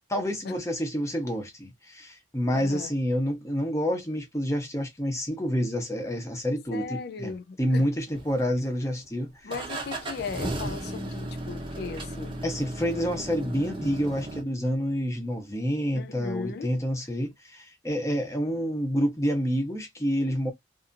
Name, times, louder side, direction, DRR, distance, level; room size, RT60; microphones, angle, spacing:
voice 1, 0.1-7.3 7.6-9.5 12.4-20.5, equal, 15° left, 0.7 m, -28 dB
voice 2, 2.5-3.0 6.7-7.9 9.4-12.4 15.9-16.8, left 4 dB, 55° left, 0.4 m, -37 dB
sound 1, 8.1-8.8 9.5-14.4, right 1 dB, 25° right, 0.7 m, -35 dB
2.6 x 2.5 x 2.5 m
head